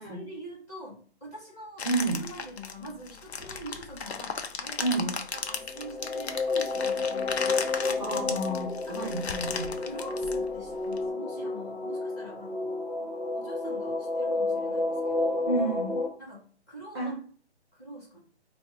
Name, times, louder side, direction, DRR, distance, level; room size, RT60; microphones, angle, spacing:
voice 1, 0.0-1.9 2.2-8.1 8.9-9.3 9.8-12.7 13.3-15.4 16.2-17.1 17.7-18.2, equal, 15° left, -3 dB, 0.8 m, -44 dB
sound 1, 1.8-11.0, left 5 dB, 65° left, 0.6 m, -36 dB
voice 2, 1.8-2.2 4.8-5.1 8.0-9.7 15.5-16.0 16.9-17.2, right 2 dB, 25° right, -1 dB, 0.5 m, -30 dB
sound 2, 5.4-16.1, left 3 dB, 50° left, 1.1 m, -31 dB
2.8 x 2.1 x 3.5 m, 0.43 s
figure-of-eight pair, 150°, 34 cm